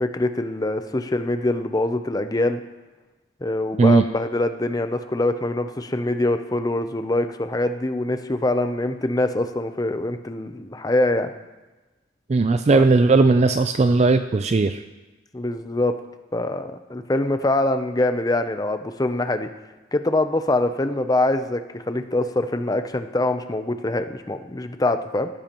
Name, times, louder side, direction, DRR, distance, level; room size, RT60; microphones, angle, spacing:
voice 1, 0.0-2.6 3.4-11.3 12.7-12.8 15.3-15.9 16.3-19.5 19.9-25.3, left 2 dB, 20° left, 8 dB, 0.5 m, -24 dB
voice 2, 12.3-14.8, right 3 dB, 35° right, 9 dB, 0.3 m, -17 dB
16.0 x 13.5 x 3.0 m, 1.2 s
head